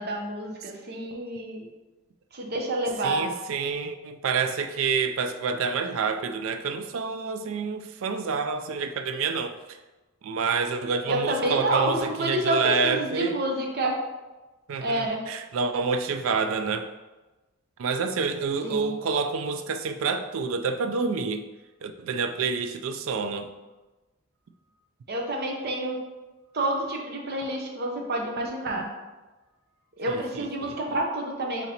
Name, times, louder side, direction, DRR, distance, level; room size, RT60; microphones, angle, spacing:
voice 1, 0.0-1.7 2.3-3.2 11.1-14.0 14.8-15.3 18.6-18.9 25.1-26.0 26.5-28.9 30.0-31.7, right 1 dB, 50° right, 0 dB, 0.7 m, -28 dB
voice 2, 3.0-9.8 10.2-13.4 14.7-16.9 17.8-21.5 21.8-23.5 30.1-31.0, right 5 dB, 70° right, 8 dB, 0.4 m, -28 dB
4.2 x 3.0 x 4.1 m, 1.1 s
head